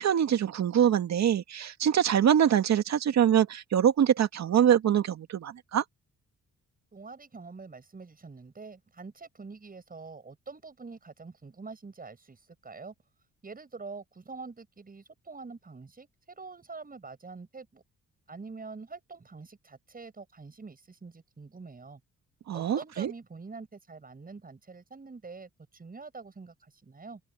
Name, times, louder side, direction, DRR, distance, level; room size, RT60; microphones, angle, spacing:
voice 1, 0.0-5.8 22.5-23.1, right 9 dB, 60° right, 2.2 m, -24 dB
voice 2, 6.9-12.9 13.4-17.8 18.3-22.0 22.5-27.2, right 4 dB, 30° right, 8.0 m, -45 dB
open air
cardioid pair, 90°, 30 cm